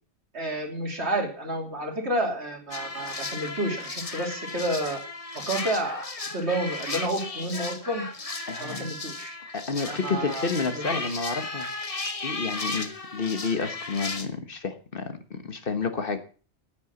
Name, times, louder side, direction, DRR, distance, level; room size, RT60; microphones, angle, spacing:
voice 1, 0.3-5.0 5.5-8.1 8.6-9.4 9.8-11.2, right 1 dB, 70° right, 2 dB, 3.3 m, -30 dB
sound 1, 2.7-14.3, left 3 dB, 30° left, 1.2 m, -35 dB
voice 2, 8.5-8.9 9.5-11.7 12.2-16.2, left 4 dB, 50° left, 8 dB, 1.5 m, -30 dB
9.6 x 9.5 x 7.0 m, 0.39 s
omnidirectional pair, 1.2 m